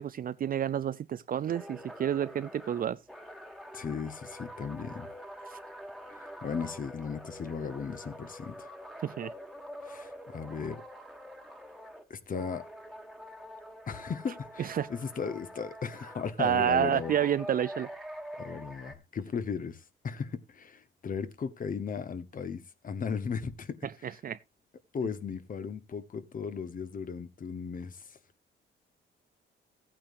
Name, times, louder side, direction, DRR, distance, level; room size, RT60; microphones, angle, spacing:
voice 1, 0.0-3.0 9.0-9.3 14.6-14.9 16.4-17.9 24.2-24.4, right 9 dB, 45° right, 0.5 m, -29 dB
sound 1, 1.5-12.1 12.3-16.3 16.8-18.9, equal, ahead, 1.7 m, -46 dB
voice 2, 3.7-5.1 6.1-8.7 9.8-10.8 12.1-12.6 13.9-17.2 18.4-24.2 24.9-28.2, left 6 dB, 45° left, 1.2 m, -36 dB
15.0 x 8.9 x 2.6 m
cardioid pair, 90°, 20 cm